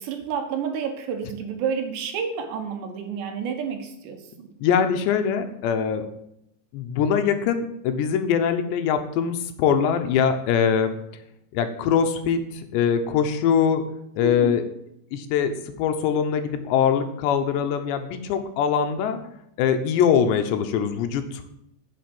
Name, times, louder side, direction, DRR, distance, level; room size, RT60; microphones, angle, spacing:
voice 1, 0.0-4.2 14.2-14.6, right 7 dB, 75° right, 6 dB, 3.5 m, -29 dB
voice 2, 4.6-6.0 6.7-10.9 11.5-13.8 14.2-14.6 15.1-19.2 19.6-21.4, left 7 dB, 80° left, 7 dB, 3.1 m, -22 dB
10.0 x 7.8 x 7.8 m, 0.78 s
omnidirectional pair, 5.2 m